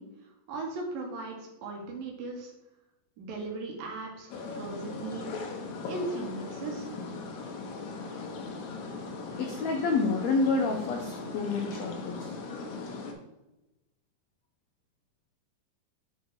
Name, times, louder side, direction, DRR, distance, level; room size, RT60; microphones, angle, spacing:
voice 1, 0.0-2.5 3.2-5.5 5.9-6.9, right 3 dB, 80° right, 0 dB, 2.9 m, -38 dB
sound 1, 4.3-13.1, left 3 dB, 70° left, 2.0 m, -39 dB
voice 2, 9.4-12.3, left 4 dB, 90° left, 2 dB, 1.5 m, -28 dB
10.5 x 4.1 x 3.1 m, 0.96 s
omnidirectional pair, 4.0 m